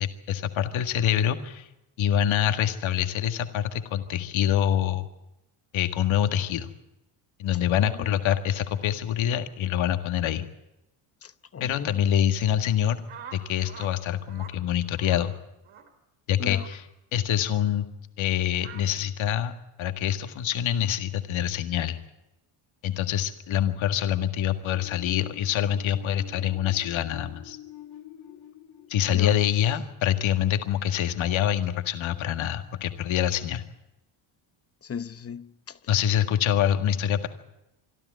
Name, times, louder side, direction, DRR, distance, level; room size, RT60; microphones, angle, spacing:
voice 1, 0.0-1.7 2.0-5.1 5.7-6.7 7.4-10.4 11.6-13.0 13.3-15.3 16.3-16.8 17.1-17.9 18.2-19.5 19.8-22.0 22.8-27.6 28.9-33.6 35.9-37.3, left 10 dB, 70° left, 1.9 m, -25 dB
voice 2, 7.8-8.1 11.2-12.0 16.4-16.7 29.1-29.4 34.8-35.8, left 7 dB, 30° left, 0.8 m, -36 dB
sound 1, 13.1-13.9 14.2-14.5 15.0-15.3 15.6-15.9 16.5-16.7 17.5-17.7 18.6-18.8, right 8 dB, 80° right, 3.7 m, -45 dB
sound 2, 24.6-30.3, left 11 dB, 85° left, 2.9 m, -47 dB
24.5 x 13.0 x 9.4 m
cardioid pair, 100°, 50 cm